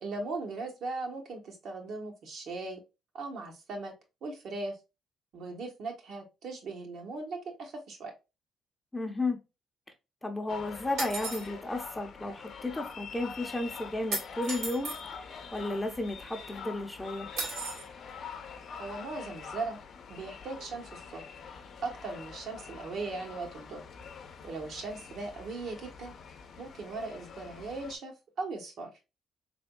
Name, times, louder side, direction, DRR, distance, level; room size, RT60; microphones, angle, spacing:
voice 1, 0.0-2.8 3.1-3.9 4.2-4.8 5.3-8.1 18.8-19.8 20.1-21.2 21.8-23.8 24.4-26.1 26.6-28.9, right 3 dB, 65° right, 1.1 m, -38 dB
voice 2, 8.9-9.4 10.2-17.3, left 2 dB, 10° left, 0.7 m, -34 dB
sound 1, 10.5-28.0, left 6 dB, 60° left, 0.6 m, -45 dB
sound 2, 11.0-11.5 14.1-15.0 17.4-17.9, right 3 dB, 85° right, 1.8 m, -35 dB
3.4 x 3.4 x 2.2 m
cardioid pair, 100°, 0 cm